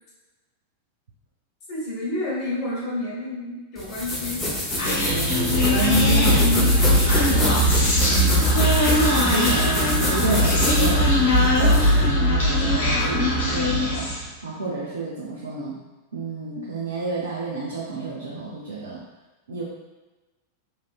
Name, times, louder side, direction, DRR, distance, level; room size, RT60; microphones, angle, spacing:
voice 1, 1.7-4.4 7.3-7.7, left 2 dB, 35° left, -6 dB, 1.3 m, -30 dB
sound 1, 3.8-12.1, left 1 dB, 10° left, 0.8 m, -27 dB
Human voice, 4.8-14.3, equal, 60° left, 1.0 m, -20 dB
voice 2, 4.8-6.7 8.1-8.5 9.1-14.1 14.4-15.8 16.1-19.0 19.5-19.6, right 2 dB, 65° right, -6 dB, 0.6 m, -29 dB
3.2 x 2.7 x 2.3 m, 1.1 s
figure-of-eight pair, 90°, 0 cm